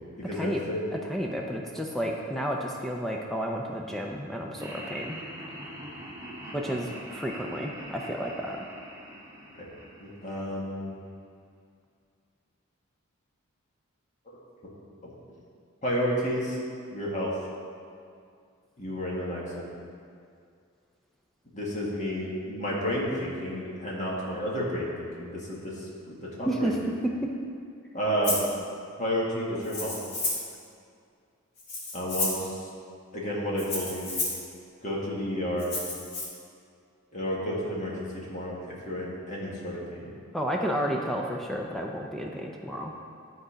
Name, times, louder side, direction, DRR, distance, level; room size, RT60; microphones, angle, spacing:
voice 1, 0.0-0.9 9.6-9.7 10.0-10.9 15.0-15.1 15.8-16.6 16.9-17.3 18.8-19.7 21.5-26.7 27.9-28.4 29.0-29.9 31.9-32.7 33.1-34.1 34.8-35.7 37.1-40.1, equal, 35° left, -5 dB, 1.7 m, -31 dB
voice 2, 0.9-5.2 6.5-8.6 26.4-26.8 27.0-27.3 40.3-42.9, equal, ahead, -1 dB, 0.4 m, -31 dB
Laughter, 4.6-10.8, equal, 15° right, 1.1 m, -43 dB
Rattle (instrument), 28.2-28.5 29.6-30.5 31.6-32.5 33.6-34.4 35.6-36.2, left 2 dB, 50° left, 2.0 m, -31 dB
11.5 x 4.0 x 5.0 m, 2.3 s
head